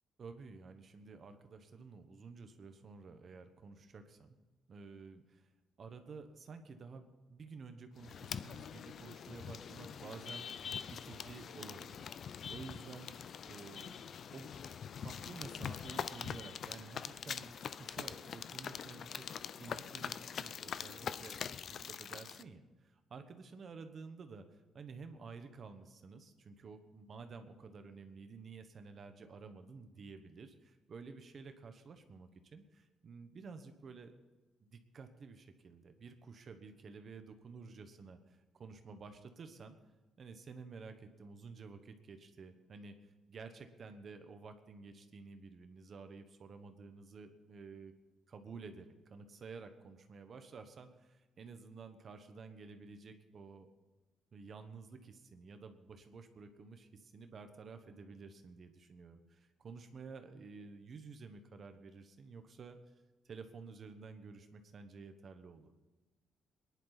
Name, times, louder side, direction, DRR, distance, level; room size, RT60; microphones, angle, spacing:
voice 1, 0.2-4.4 4.7-5.5 5.8-10.5 10.9-12.1 12.5-13.1 13.4-14.0 14.3-14.5 15.0-19.2 19.6-21.4 21.8-34.1 34.7-39.8 40.2-43.0 43.3-47.9 48.3-53.7 54.3-62.8 63.2-65.7, right 4 dB, 35° right, 8 dB, 1.2 m, -52 dB
sound 1, 8.0-22.4, left 7 dB, 45° left, 0.4 m, -44 dB
23.5 x 11.0 x 4.1 m, 1.2 s
cardioid pair, 175°, 0 cm